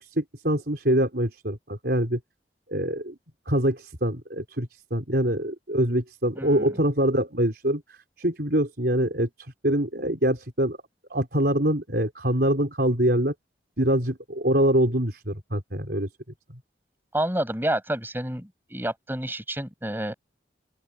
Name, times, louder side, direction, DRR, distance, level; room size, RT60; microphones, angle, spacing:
voice 1, 0.0-2.2 2.7-3.2 3.5-7.8 8.2-9.3 9.6-10.8 11.1-13.3 13.8-16.1, right 1 dB, 60° right, 5.1 m, -24 dB
voice 2, 6.4-6.7 17.1-20.1, right 1 dB, 10° right, 6.9 m, -29 dB
open air
head